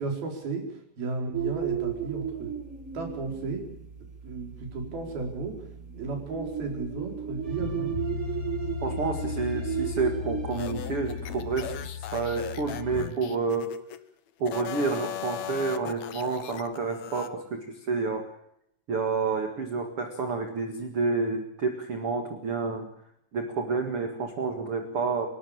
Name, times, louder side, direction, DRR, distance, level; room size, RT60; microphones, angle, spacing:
voice 1, 0.0-2.5 2.9-3.7 4.0-8.4, right 3 dB, 60° right, 2 dB, 6.3 m, -34 dB
sound 1, 1.3-11.9, right 9 dB, 80° right, 0.7 m, -35 dB
sound 2, 7.4-13.1, left 7 dB, 25° right, 4.3 m, -36 dB
voice 2, 8.8-13.8 14.4-18.3 18.9-22.9 23.3-25.3, right 4 dB, 45° right, 5 dB, 2.2 m, -29 dB
sound 3, 10.5-14.0 14.4-17.3, left 11 dB, 85° left, 1.5 m, -38 dB
29.5 x 13.0 x 8.8 m, 0.76 s
omnidirectional pair, 4.8 m